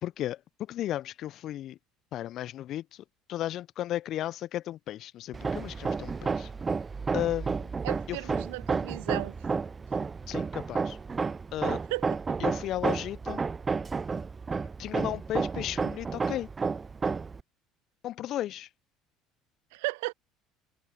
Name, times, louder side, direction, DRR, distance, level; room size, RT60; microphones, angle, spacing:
voice 1, 0.0-1.8 2.1-6.5 7.1-7.7 8.1-8.2 8.7-8.8 10.3-11.0 11.5-11.8 12.4-13.4 14.8-16.5 18.0-18.7, left 13 dB, 50° left, 0.9 m, -34 dB
Hammer, 5.3-17.4, right 5 dB, 25° right, 0.7 m, -31 dB
voice 2, 7.8-9.6 11.9-12.1 19.7-20.1, right 26 dB, 70° right, 0.5 m, -34 dB
open air
figure-of-eight pair, 60°, 0 cm